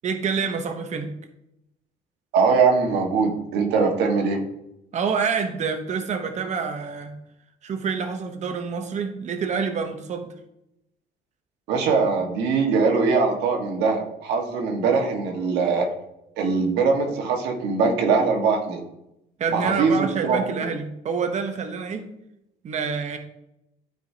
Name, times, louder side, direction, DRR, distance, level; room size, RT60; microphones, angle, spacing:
voice 1, 0.0-1.1 4.9-7.1 7.6-10.3 19.4-22.1 22.6-23.2, right 5 dB, 45° right, 6 dB, 1.0 m, -27 dB
voice 2, 2.3-4.4 11.7-15.9 16.4-18.8 19.5-20.6, right 4 dB, 85° right, 2 dB, 1.6 m, -22 dB
13.0 x 4.7 x 2.8 m, 0.84 s
cardioid pair, 110°, 17 cm